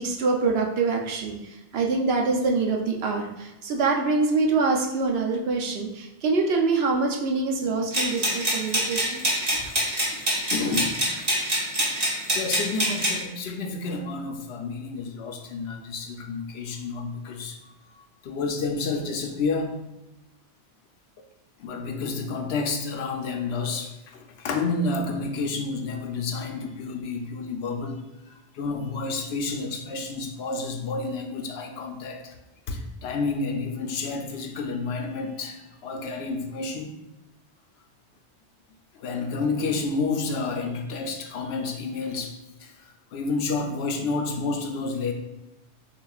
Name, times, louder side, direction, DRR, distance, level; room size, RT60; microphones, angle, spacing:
voice 1, 0.0-9.2, right 3 dB, 70° right, 1 dB, 0.8 m, -25 dB
sound 1, 7.9-13.2, right 1 dB, 35° right, 1.2 m, -25 dB
voice 2, 10.5-11.3 12.3-19.7 21.6-28.0 28.3-32.4 32.7-36.9 38.9-42.7 43.1-45.1, left 3 dB, 70° left, 4 dB, 0.8 m, -30 dB
6.5 x 2.4 x 2.3 m, 0.98 s
omnidirectional pair, 1.1 m